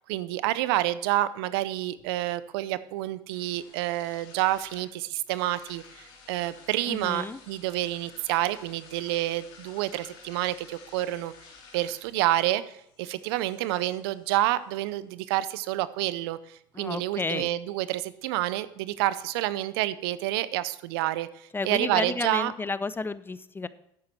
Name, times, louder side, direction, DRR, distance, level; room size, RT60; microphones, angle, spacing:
voice 1, 0.1-11.3 11.7-12.6 13.0-21.3 21.6-22.5, right 15 dB, 75° right, 16 dB, 0.6 m, -28 dB
sound 1, 1.5-19.5, left 5 dB, 70° left, 3.3 m, -55 dB
voice 2, 6.9-7.4 16.7-17.5 21.5-23.7, left 3 dB, 15° left, 16 dB, 0.6 m, -32 dB
10.5 x 8.6 x 4.5 m, 0.76 s
hypercardioid pair, 75°, 13 cm